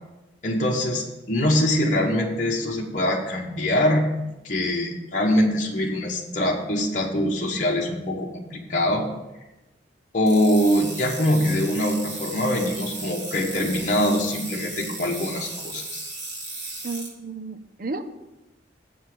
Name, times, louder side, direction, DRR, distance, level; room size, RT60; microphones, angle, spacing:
voice 1, 0.4-4.1 4.4-9.1 10.1-16.0, left 1 dB, 45° left, -2 dB, 1.1 m, -23 dB
sound 1, 10.3-17.1, right 2 dB, 70° right, 3.6 m, -36 dB
voice 2, 16.8-18.0, right 3 dB, 50° right, 9 dB, 0.7 m, -32 dB
7.7 x 5.4 x 7.6 m, 1.0 s
head